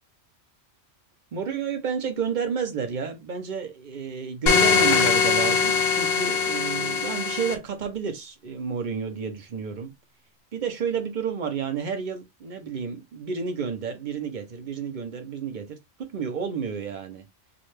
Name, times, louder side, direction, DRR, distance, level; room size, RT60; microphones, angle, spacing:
voice 1, 1.3-9.9 10.5-17.3, right 6 dB, 50° right, 0.7 m, -31 dB
sound 1, 4.5-7.5, left 5 dB, 65° left, 0.8 m, -22 dB
2.4 x 2.2 x 3.1 m
omnidirectional pair, 1.2 m